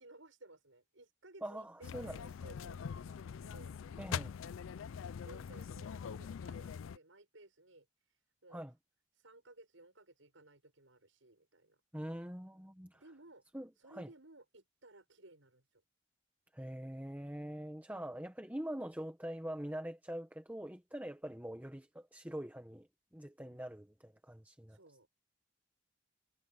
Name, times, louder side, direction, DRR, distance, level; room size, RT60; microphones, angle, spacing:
voice 1, 0.0-3.7 5.1-8.7 9.1-11.8 12.9-13.4 13.8-15.8 23.4-23.6 24.7-25.1, right 2 dB, 80° right, 6.7 m, -59 dB
voice 2, 1.4-2.2 4.0-4.3 8.5-8.7 11.9-13.0 13.5-14.1 16.5-22.9 23.1-24.8, equal, 10° right, 1.3 m, -44 dB
sound 1, 1.8-7.0, left 7 dB, 90° left, 0.4 m, -43 dB
head